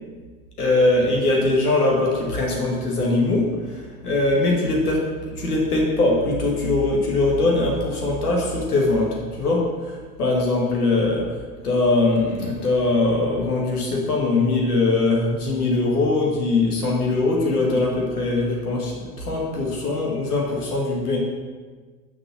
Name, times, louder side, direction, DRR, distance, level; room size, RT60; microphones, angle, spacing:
voice 1, 0.6-11.4 11.6-21.2, left 2 dB, 80° left, -2 dB, 2.1 m, -21 dB
6.3 x 5.7 x 6.2 m, 1.4 s
figure-of-eight pair, 75°, 45 cm